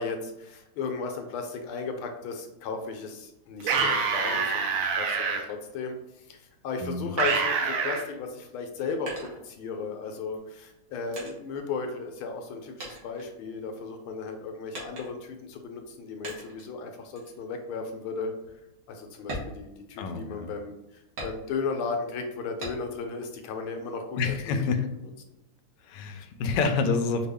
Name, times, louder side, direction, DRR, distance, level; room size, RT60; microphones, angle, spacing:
voice 1, 0.0-18.3 18.9-24.6, left 4 dB, 90° left, 4 dB, 1.6 m, -35 dB
sound 1, 3.6-5.4 7.2-8.0, right 5 dB, 80° right, 1.6 m, -26 dB
voice 2, 6.8-7.1 20.0-20.5 24.2-24.8 25.8-27.3, left 4 dB, 75° left, 6 dB, 1.1 m, -28 dB
sound 2, 9.1-10.0 10.7-12.5 12.8-14.0 14.7-15.4 16.2-16.7 17.2-17.4 17.9-18.0 18.4-18.6 19.2-20.4 21.2-21.8 22.6-23.1 23.5-24.4, right 1 dB, 60° right, 1.8 m, -42 dB
5.4 x 2.4 x 3.4 m, 0.91 s
omnidirectional pair, 2.3 m